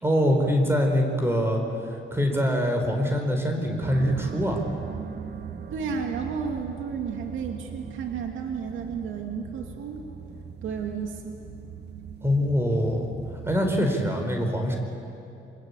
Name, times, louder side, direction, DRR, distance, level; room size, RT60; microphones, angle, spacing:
voice 1, 0.0-1.6 1.9-4.6 12.2-13.1 13.5-14.8, equal, 10° right, 3 dB, 4.8 m, -24 dB
sound 1, 3.8-13.8, right 7 dB, 55° right, 1.5 m, -40 dB
voice 2, 5.7-10.0 10.6-11.4, right 6 dB, 80° right, 2 dB, 2.7 m, -32 dB
26.5 x 21.0 x 8.5 m, 2.6 s
cardioid pair, 90°, 20 cm